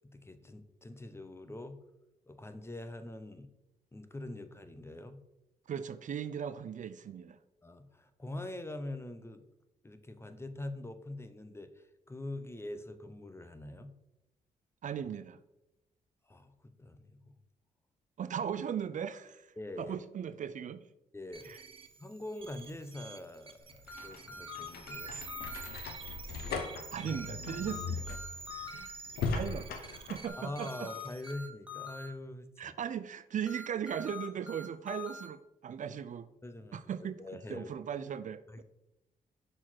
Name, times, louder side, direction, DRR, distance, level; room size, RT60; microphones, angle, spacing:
voice 1, 0.1-1.8 2.3-3.5 3.9-5.2 7.6-9.4 9.8-13.9 16.3-17.3 19.6-20.0 21.1-21.5 22.0-25.2 30.4-32.8 36.4-36.8 37.2-37.7 38.5-38.6, left 1 dB, 15° left, 10 dB, 0.6 m, -44 dB
voice 2, 5.7-7.4 14.8-15.4 18.2-20.8 21.4-21.6 26.9-28.2 28.7-28.9 29.2-30.9 32.6-36.3 36.7-37.2 37.5-38.4, right 8 dB, 55° right, 13 dB, 0.4 m, -38 dB
sound 1, 21.3-31.3, right 4 dB, 35° right, 0.8 m, -48 dB
sound 2, 23.6-30.3, left 4 dB, 90° left, 0.7 m, -39 dB
sound 3, 23.9-25.7 27.1-28.9 30.3-32.1 33.5-35.3, left 4 dB, 10° right, 1.3 m, -45 dB
6.3 x 4.1 x 4.5 m, 0.91 s
cardioid pair, 70°, 16 cm